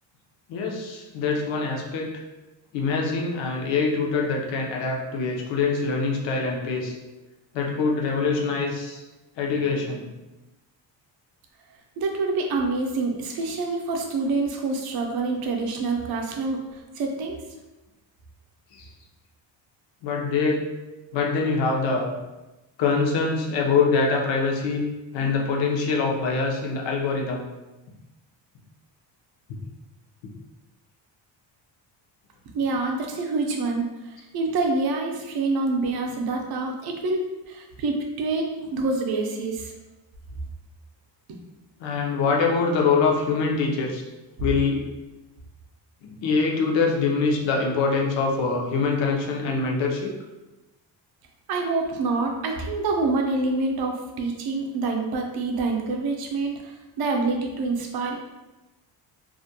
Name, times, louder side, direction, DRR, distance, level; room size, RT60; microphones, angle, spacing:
voice 1, 0.5-2.2 2.7-6.9 7.5-9.0 9.4-10.1 18.7-18.9 20.0-20.7 21.1-22.1 22.8-27.4 29.5-29.6 41.8-44.0 44.4-44.8 46.0-50.1, left 4 dB, 75° left, 0 dB, 0.6 m, -24 dB
voice 2, 12.0-17.4 32.5-37.2 37.5-39.7 41.3-41.4 51.5-58.2, right 3 dB, 55° right, 2 dB, 0.5 m, -26 dB
2.4 x 2.1 x 2.7 m, 1.1 s
cardioid pair, 155°, 45 cm